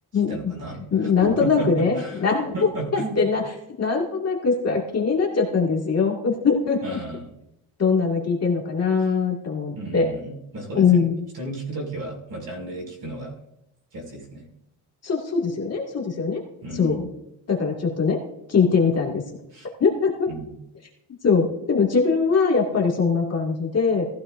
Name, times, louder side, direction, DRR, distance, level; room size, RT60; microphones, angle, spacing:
voice 1, 0.1-2.2 2.5-3.3 6.8-7.3 9.0-9.1 9.7-11.1 11.3-13.4 13.9-14.5 16.6-17.1 19.5-19.7 20.3-20.5, right 2 dB, 45° right, -1 dB, 5.9 m, -34 dB
voice 2, 0.9-2.5 2.9-3.4 3.8-7.0 7.8-10.1 10.7-11.2 15.0-16.4 16.7-17.1 17.5-18.2 18.5-19.2 19.8-20.3 21.2-24.0, left 5 dB, 30° left, -1 dB, 2.2 m, -22 dB
18.5 x 15.5 x 2.6 m, 0.83 s
cardioid pair, 160°, 47 cm